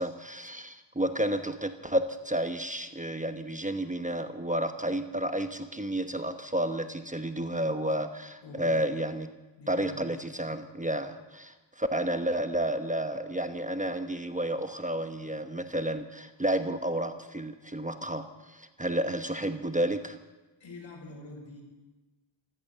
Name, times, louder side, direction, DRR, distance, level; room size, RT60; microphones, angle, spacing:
voice 1, 0.0-9.3 9.7-20.2, right 1 dB, 15° right, 8 dB, 1.1 m, -31 dB
voice 2, 8.4-8.8 9.6-10.4 20.6-21.6, left 2 dB, 70° left, 1 dB, 5.5 m, -46 dB
15.0 x 14.0 x 6.8 m, 1.2 s
cardioid pair, 55°, 47 cm